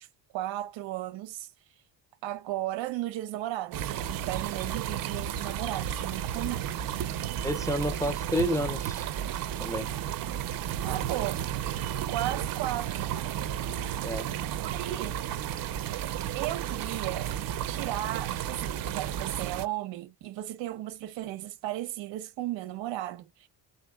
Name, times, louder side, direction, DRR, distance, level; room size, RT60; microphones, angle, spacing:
voice 1, 0.3-1.5 2.2-6.9 10.8-11.4 12.1-13.2 14.6-15.2 16.3-17.3 17.7-23.5, right 14 dB, 90° right, 0.9 m, -35 dB
sound 1, 3.7-19.7, right 10 dB, 50° right, 0.5 m, -33 dB
voice 2, 7.4-9.1 9.6-10.0 14.0-14.3, equal, 10° left, 0.3 m, -30 dB
3.7 x 3.5 x 2.2 m
cardioid pair, 160°, 44 cm